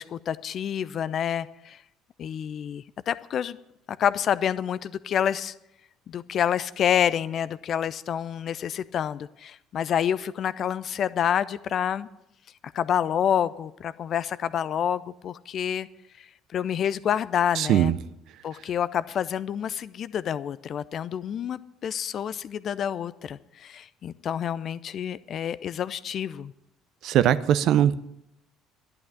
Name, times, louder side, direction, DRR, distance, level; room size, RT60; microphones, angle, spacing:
voice 1, 0.0-1.8 2.2-3.6 3.9-5.5 6.1-12.1 12.7-15.9 16.5-17.9 18.4-26.5, left 9 dB, 50° left, 0.6 m, -28 dB
voice 2, 17.6-17.9 27.0-28.0, right 11 dB, 60° right, 0.6 m, -20 dB
12.0 x 8.7 x 9.2 m
figure-of-eight pair, 55°, 0 cm